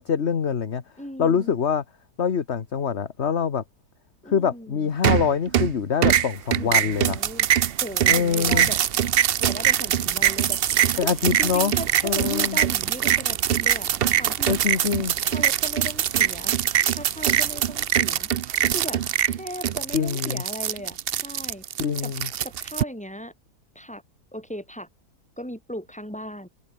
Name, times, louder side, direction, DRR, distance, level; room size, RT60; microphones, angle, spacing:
voice 1, 0.0-0.8 1.2-1.8 2.2-3.6 4.3-7.2 8.1-8.7 11.0-11.7 12.0-12.6 14.5-15.1 19.9-20.4 21.8-22.3, left 7 dB, 45° left, 1.5 m, -24 dB
voice 2, 1.0-1.6 4.2-4.9 6.6-8.8 9.4-11.1 11.4-14.6 15.2-16.5 16.9-18.3 18.7-21.0 21.2-21.6 22.0-22.1 22.4-23.3 23.7-24.0 24.3-24.9 25.4-26.5, equal, 5° left, 7.5 m, -37 dB
sound 1, 5.0-5.7 6.0-22.8, right 10 dB, 65° right, 0.6 m, -23 dB
omnidirectional pair, 1.7 m